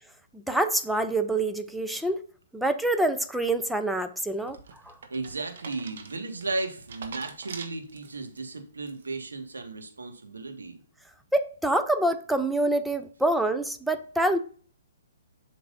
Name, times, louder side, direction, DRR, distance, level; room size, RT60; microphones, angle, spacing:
voice 1, 0.3-2.2 2.5-4.6 4.8-5.0 11.3-14.4, right 1 dB, ahead, 0.5 m, -26 dB
sound 1, 4.2-8.4 8.8-9.3, right 5 dB, 60° right, 1.3 m, -44 dB
voice 2, 5.1-10.8, right 3 dB, 85° right, 1.8 m, -35 dB
7.9 x 6.0 x 2.7 m
hypercardioid pair, 140°, 0 cm